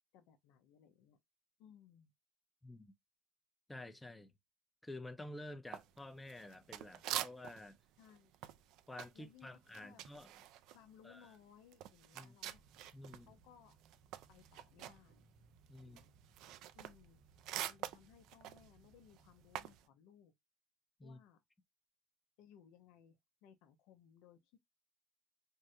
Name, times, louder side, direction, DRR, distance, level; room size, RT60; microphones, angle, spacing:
voice 1, 0.1-1.2 1.6-2.1 8.0-8.3 9.1-10.1 10.7-12.7 13.2-13.8 14.3-15.3 15.8-16.2 16.7-20.3 21.0-21.4 22.4-24.6, left 8 dB, 75° left, 0.6 m, -63 dB
voice 2, 2.6-2.9 3.7-4.3 4.8-7.8 8.9-10.3 11.0-11.3 12.1-12.4 12.9-13.3 15.7-16.0 21.0-21.2, left 1 dB, 10° left, 0.5 m, -50 dB
sound 1, 5.7-7.7 8.0-13.3 13.6-19.8, right 12 dB, 70° right, 0.3 m, -46 dB
sound 2, 12.5-19.8, right 4 dB, 30° right, 0.9 m, -68 dB
3.6 x 2.1 x 2.7 m
supercardioid pair, 95°, 0 cm